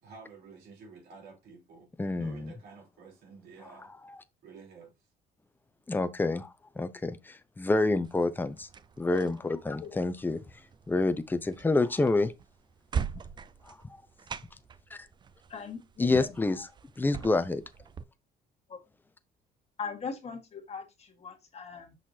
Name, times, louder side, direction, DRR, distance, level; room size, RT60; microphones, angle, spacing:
voice 1, 0.0-3.9 4.4-4.9, right 4 dB, 70° right, 3.4 m, -51 dB
voice 2, 2.0-2.5 4.0-4.2 5.9-8.7 9.0-10.4 10.9-12.3 13.7-13.8 16.0-16.7 17.0-17.6, left 2 dB, 10° left, 0.7 m, -28 dB
sound 1, 8.0-18.0, right 7 dB, 25° right, 0.4 m, -42 dB
voice 3, 15.5-16.3 18.7-18.8 19.8-21.9, left 5 dB, 40° left, 1.6 m, -40 dB
6.5 x 5.6 x 2.7 m
cardioid pair, 110°, 17 cm